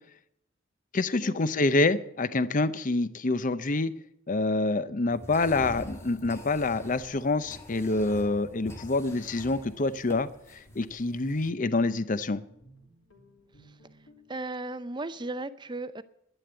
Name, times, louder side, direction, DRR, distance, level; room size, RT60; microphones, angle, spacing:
voice 1, 0.9-3.9 4.3-12.4, left 2 dB, 40° left, 0.7 m, -27 dB
sound 1, 5.1-11.5, left 1 dB, 15° left, 1.8 m, -45 dB
Guitar, 10.2-14.4, equal, 70° left, 3.4 m, -58 dB
voice 2, 14.3-16.0, right 2 dB, 20° right, 0.6 m, -36 dB
11.0 x 10.5 x 8.1 m
head